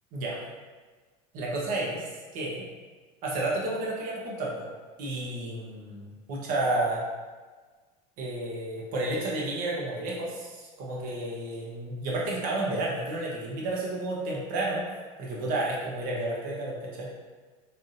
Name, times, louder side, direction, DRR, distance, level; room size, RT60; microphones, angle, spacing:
voice 1, 1.3-2.6 3.2-4.7 5.0-7.0 8.2-14.8 15.2-17.1, right 2 dB, 50° right, -4 dB, 1.0 m, -31 dB
4.2 x 3.4 x 2.5 m, 1.4 s
supercardioid pair, 150°, 18 cm